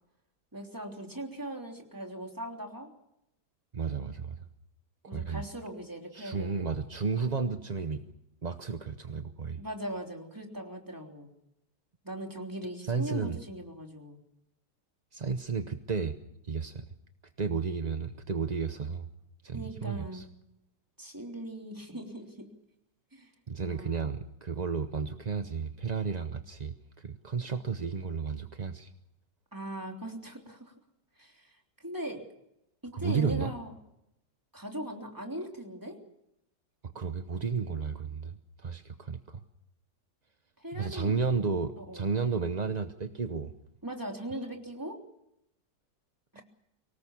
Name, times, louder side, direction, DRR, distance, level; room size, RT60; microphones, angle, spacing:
voice 1, 0.5-2.9 5.1-6.6 9.6-11.3 12.0-14.2 19.5-20.3 21.0-22.5 23.1-23.3 23.6-24.1 29.5-30.7 31.2-32.2 32.8-33.7 34.5-36.0 40.6-41.2 41.8-42.1 43.8-45.0 46.3-46.4, right 1 dB, 10° right, 2 dB, 3.2 m, -40 dB
voice 2, 3.7-4.4 5.0-5.4 6.1-8.0 8.4-9.6 12.8-13.4 15.1-16.1 16.4-16.9 17.4-19.1 19.4-20.3 23.5-28.9 32.9-33.5 36.8-39.4 40.7-43.5, right 5 dB, 35° right, 8 dB, 0.7 m, -32 dB
24.5 x 18.5 x 7.2 m, 0.82 s
omnidirectional pair, 1.8 m